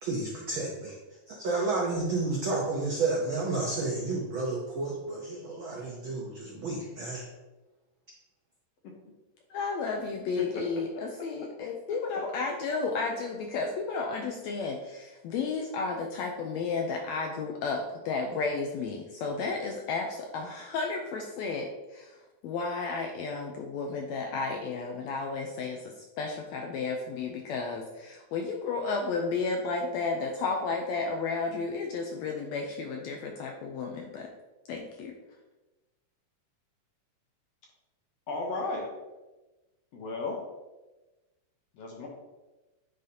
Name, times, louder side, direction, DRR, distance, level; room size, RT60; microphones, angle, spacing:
voice 1, 0.0-1.0 1.3-7.3, right 3 dB, 80° right, -3 dB, 1.1 m, -31 dB
voice 2, 9.5-22.2 22.4-34.3 34.7-35.1, left 4 dB, 80° left, 2 dB, 1.6 m, -33 dB
voice 3, 10.4-10.7 38.3-38.9 39.9-40.4 41.8-42.1, left 3 dB, 65° left, 0 dB, 1.6 m, -34 dB
9.9 x 3.9 x 2.8 m, 1.1 s
omnidirectional pair, 3.6 m